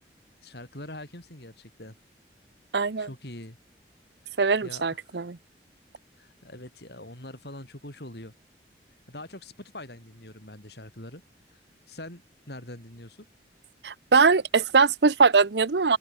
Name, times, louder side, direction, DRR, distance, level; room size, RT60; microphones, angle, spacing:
voice 1, 0.4-1.9 3.0-3.6 4.2-5.1 6.2-8.3 9.1-11.2 11.5-11.6 11.9-12.2 12.5-13.3, left 1 dB, 65° left, 6.2 m, -43 dB
voice 2, 2.7-3.1 4.4-5.4 13.8-16.0, right 4 dB, 70° right, 0.7 m, -21 dB
open air
head